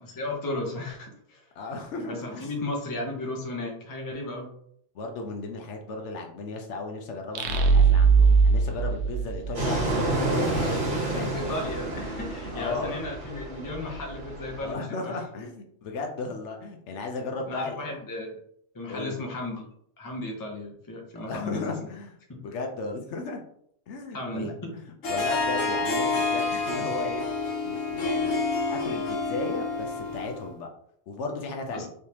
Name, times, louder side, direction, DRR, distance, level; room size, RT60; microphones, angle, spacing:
voice 1, 0.2-1.5 1.9-4.5 11.1-15.2 17.5-18.4 18.7-19.7 20.0-21.9 22.3-22.4 24.1-24.7 31.7-31.8, left 2 dB, 20° left, 0 dB, 0.6 m, -35 dB
voice 2, 1.6-2.5 4.9-11.5 12.5-13.0 14.6-18.0 18.9-19.3 21.1-22.1 22.4-23.4 23.9-27.2 27.6-28.4 28.7-30.7 31.1-31.9, left 3 dB, 70° left, 3 dB, 0.9 m, -35 dB
sound 1, 7.3-10.0, right 5 dB, 70° right, 0.8 m, -20 dB
Fixed-wing aircraft airplane, 9.5-14.7, right 2 dB, 40° right, 1.3 m, -30 dB
Harp, 25.0-30.5, left 3 dB, 85° left, 1.3 m, -28 dB
3.4 x 3.2 x 2.9 m, 0.68 s
omnidirectional pair, 1.3 m